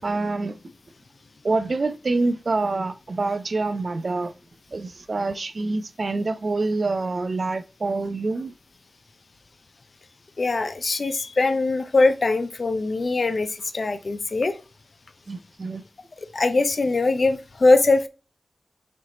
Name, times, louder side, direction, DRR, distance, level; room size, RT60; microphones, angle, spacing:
voice 1, 0.0-0.6 1.4-4.3 4.7-8.5 15.3-15.8, right 3 dB, 60° right, 0.4 m, -26 dB
voice 2, 10.4-14.6 16.3-18.1, left 3 dB, 65° left, 0.5 m, -21 dB
4.3 x 3.1 x 3.8 m
cardioid pair, 55°, 0 cm